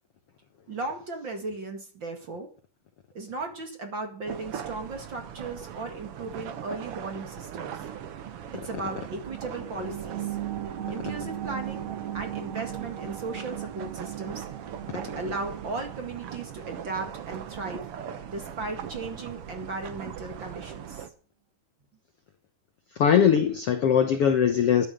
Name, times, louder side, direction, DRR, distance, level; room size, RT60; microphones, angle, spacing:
voice 1, 0.7-2.5 3.1-7.8 8.5-10.4 10.9-11.9 12.1-14.5 14.9-17.9 18.3-21.1, right 3 dB, 40° right, 5 dB, 2.1 m, -36 dB
sound 1, 4.3-21.1, right 9 dB, 85° right, 1.2 m, -40 dB
sound 2, 8.7-19.8 20.2-20.3, right 11 dB, 60° right, 2.1 m, -39 dB
voice 2, 23.0-24.9, left 8 dB, 85° left, 7 dB, 1.3 m, -21 dB
13.0 x 10.5 x 6.8 m, 0.40 s
omnidirectional pair, 4.4 m